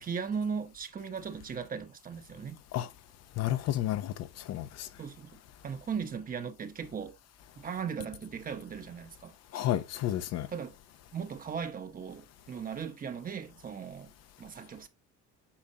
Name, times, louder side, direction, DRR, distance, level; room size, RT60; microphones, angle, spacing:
voice 1, 0.0-2.6 5.0-7.1 7.6-9.3 10.5-10.7 11.1-14.1 14.4-14.9, right 6 dB, 30° right, 1.0 m, -38 dB
voice 2, 3.4-4.9 9.5-10.5, left 12 dB, 60° left, 0.8 m, -31 dB
8.8 x 5.6 x 2.9 m
cardioid pair, 135°, 30 cm